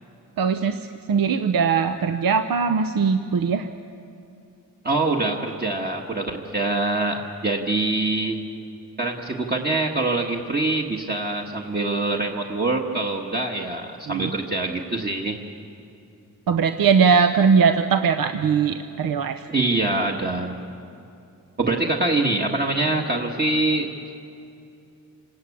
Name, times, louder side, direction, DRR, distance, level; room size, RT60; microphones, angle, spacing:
voice 1, 0.4-3.7 14.1-14.3 16.5-19.5, right 6 dB, 75° right, 9 dB, 0.8 m, -20 dB
voice 2, 4.8-8.4 9.0-15.4 19.5-20.5 21.6-24.2, right 2 dB, 25° right, 0 dB, 1.6 m, -24 dB
27.0 x 19.0 x 8.5 m, 2.6 s
wide cardioid pair, 120°, 35 cm